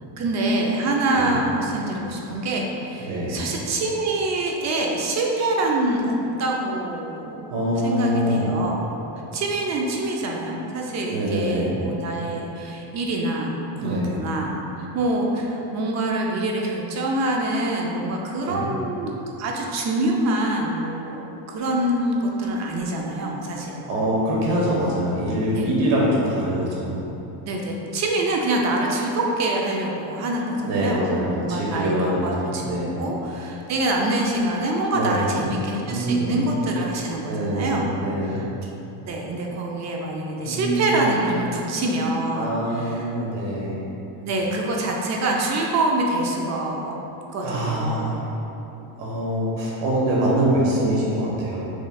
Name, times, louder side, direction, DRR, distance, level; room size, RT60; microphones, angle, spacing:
voice 1, 0.2-7.6 7.8-8.8 9.3-14.6 14.9-19.1 19.4-23.8 25.5-25.7 27.4-37.9 38.3-38.7 39.1-43.1 44.2-47.0 47.3-48.2, right 2 dB, 35° right, -1 dB, 0.5 m, -25 dB
voice 2, 3.0-3.4 7.5-8.5 11.1-11.8 13.8-14.1 18.4-18.7 23.9-26.9 30.6-33.0 34.9-35.4 35.9-36.5 37.3-38.4 40.4-40.9 42.3-43.8 47.4-48.3 49.0-51.7, right 1 dB, 60° right, -5 dB, 1.4 m, -24 dB
6.4 x 3.1 x 2.3 m, 3.0 s
cardioid pair, 140°, 49 cm